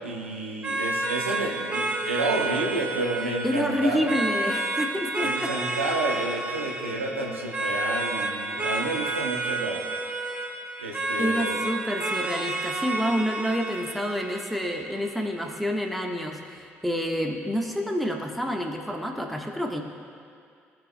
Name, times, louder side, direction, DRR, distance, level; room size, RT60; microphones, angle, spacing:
voice 1, 0.0-4.1 5.2-9.8 10.8-11.6, right 2 dB, 90° right, -1 dB, 0.9 m, -30 dB
sound 1, 0.6-15.6, right 2 dB, 20° right, 1.8 m, -30 dB
voice 2, 3.4-5.5 11.2-19.8, equal, ahead, 2 dB, 1.4 m, -28 dB
18.5 x 6.6 x 2.3 m, 2.4 s
figure-of-eight pair, 50°, 7 cm